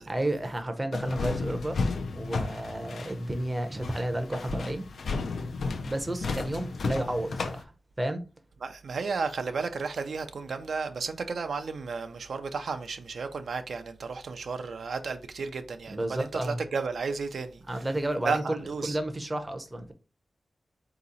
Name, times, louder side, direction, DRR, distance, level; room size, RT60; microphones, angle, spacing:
voice 1, 0.1-1.8 2.1-4.9 5.8-7.7 8.0-8.2 15.9-16.6 17.7-19.9, right 1 dB, 15° right, 0.6 m, -31 dB
sound 1, 0.9-7.6, left 4 dB, 85° left, 0.5 m, -33 dB
voice 2, 8.6-17.6 18.2-19.0, right 4 dB, 75° right, 0.5 m, -33 dB
4.0 x 2.8 x 3.8 m
wide cardioid pair, 155°, 0 cm